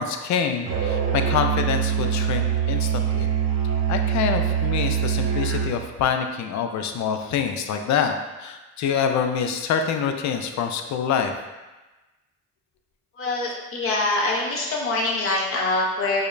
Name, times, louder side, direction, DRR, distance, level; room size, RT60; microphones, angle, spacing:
voice 1, 0.0-3.3 3.9-8.1 8.4-11.4, left 7 dB, 65° left, 6 dB, 0.4 m, -26 dB
Musical instrument, 0.7-5.8, right 8 dB, 60° right, 0.6 m, -24 dB
voice 2, 13.2-16.2, left 2 dB, 45° left, -3 dB, 0.9 m, -24 dB
5.0 x 2.1 x 2.5 m, 1.1 s
cardioid pair, 90°, 30 cm